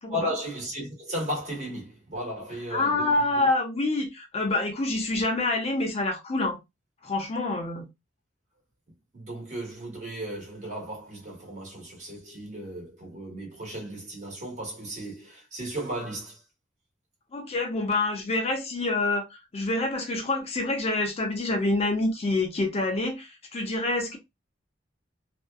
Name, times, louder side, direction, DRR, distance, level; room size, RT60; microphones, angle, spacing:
voice 1, 0.1-3.5 9.1-16.4, equal, 40° right, 1.2 m, -35 dB
voice 2, 2.7-6.6 7.0-7.8 17.3-19.3 19.5-24.2, left 2 dB, 35° left, 0.5 m, -27 dB
2.6 x 2.1 x 2.2 m
head